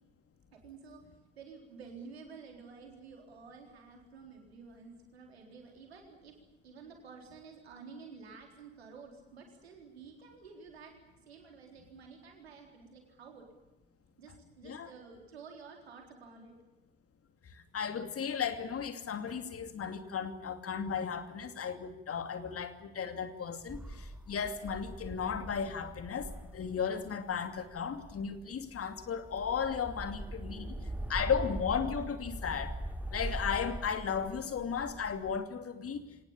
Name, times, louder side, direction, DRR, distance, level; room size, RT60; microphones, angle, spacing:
voice 1, 0.5-1.0 1.4-6.3 6.6-11.0 11.3-13.5 14.2-16.5 30.2-30.9, right 5 dB, 90° right, 3 dB, 4.0 m, -51 dB
voice 2, 17.4-30.7 31.1-32.8 33.1-36.1, left 7 dB, 50° left, 9 dB, 2.8 m, -35 dB
sound 1, 23.7-35.4, right 1 dB, 5° right, 2.2 m, -42 dB
24.5 x 19.0 x 8.7 m, 1.1 s
hypercardioid pair, 50°, 31 cm